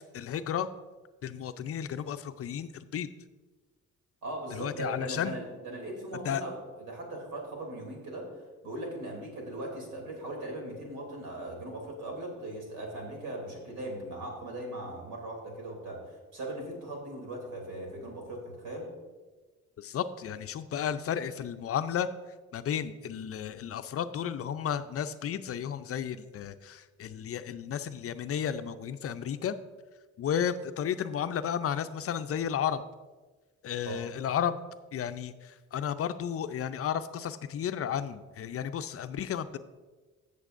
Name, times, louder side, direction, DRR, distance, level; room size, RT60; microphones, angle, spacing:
voice 1, 0.1-0.7 1.2-3.1 4.5-5.4 6.2-6.4 19.8-22.1 22.5-29.5 30.2-32.8 33.6-34.6 34.9-39.6, left 8 dB, 50° left, 11 dB, 0.5 m, -33 dB
voice 2, 4.2-18.9 33.9-34.0, right 1 dB, 80° right, 0 dB, 2.9 m, -39 dB
15.0 x 6.8 x 2.5 m, 1.3 s
cardioid pair, 90°, 30 cm